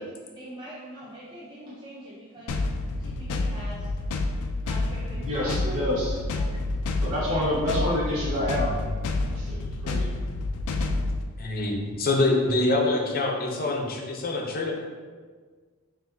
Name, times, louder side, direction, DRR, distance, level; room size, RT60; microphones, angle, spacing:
voice 1, 0.0-2.6 3.0-3.9 4.6-6.6 7.2-7.5 7.8-8.9, equal, 20° right, -8 dB, 0.5 m, -43 dB
sound 1, 2.5-11.2, left 2 dB, 90° left, 0.4 m, -29 dB
voice 2, 5.2-6.2 7.0-8.7 9.2-10.1, left 1 dB, 85° right, -10 dB, 1.1 m, -28 dB
voice 3, 11.4-14.7, left 2 dB, 45° left, 1 dB, 0.6 m, -25 dB
5.8 x 2.5 x 2.6 m, 1.5 s
head